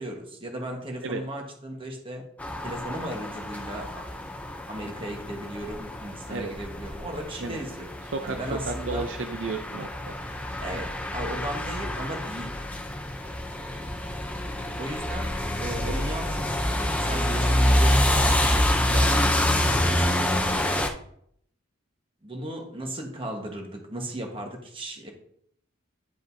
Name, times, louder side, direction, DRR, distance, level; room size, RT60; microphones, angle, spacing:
voice 1, 0.0-2.3 2.6-4.0 4.7-7.9 8.2-9.0 10.6-12.5 14.8-20.2 22.2-25.1, right 1 dB, 25° right, 2 dB, 1.3 m, -36 dB
sound 1, 2.4-20.9, left 1 dB, 5° left, 0.5 m, -27 dB
voice 2, 8.1-10.2 15.8-16.0, right 3 dB, 65° right, 6 dB, 0.5 m, -33 dB
10.5 x 5.1 x 2.7 m, 0.68 s
head